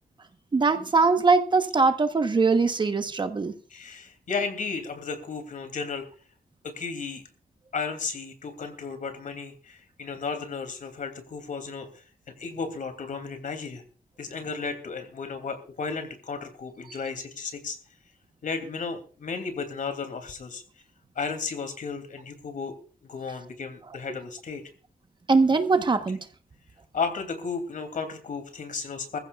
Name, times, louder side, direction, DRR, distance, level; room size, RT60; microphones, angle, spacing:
voice 1, 0.5-3.5 25.3-26.2, right 4 dB, 30° right, 8 dB, 1.1 m, -21 dB
voice 2, 3.7-6.0 6.6-7.2 7.7-13.8 14.2-17.8 18.4-20.6 21.2-22.8 23.0-24.6 26.9-29.2, left 5 dB, 65° left, 8 dB, 2.8 m, -34 dB
21.5 x 15.0 x 2.4 m, 0.39 s
wide cardioid pair, 140°, 15 cm